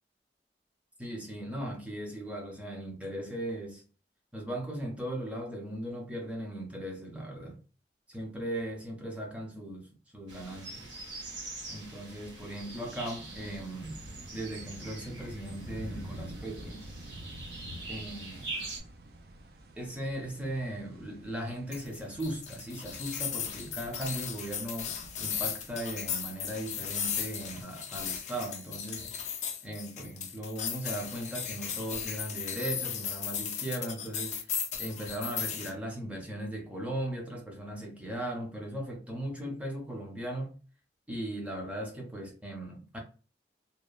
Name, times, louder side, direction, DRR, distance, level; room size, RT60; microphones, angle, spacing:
voice 1, 1.0-3.8 4.3-7.6 8.1-10.9 11.7-14.0 14.3-16.9 17.9-18.5 19.8-29.4 29.6-40.6 41.1-43.0, right 1 dB, 10° right, 0.6 m, -38 dB
sound 1, 10.3-18.8, right 2 dB, 85° right, 1.1 m, -44 dB
sound 2, 13.3-27.6, right 1 dB, 55° right, 0.4 m, -49 dB
sound 3, 21.7-35.7, left 8 dB, 40° left, 0.4 m, -36 dB
2.9 x 2.1 x 2.2 m
head